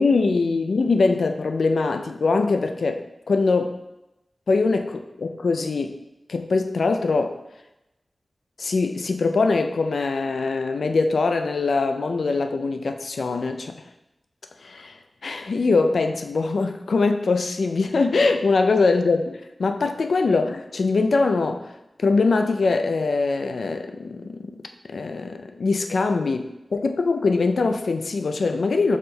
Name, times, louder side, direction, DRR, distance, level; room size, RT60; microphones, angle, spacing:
voice 1, 0.0-3.8 4.5-6.0 6.3-7.4 8.6-13.7 14.6-15.0 15.2-21.7 22.0-24.5 24.9-29.0, left 3 dB, 80° left, 6 dB, 0.4 m, -22 dB
4.2 x 3.6 x 3.3 m, 0.94 s
wide cardioid pair, 90°, 0 cm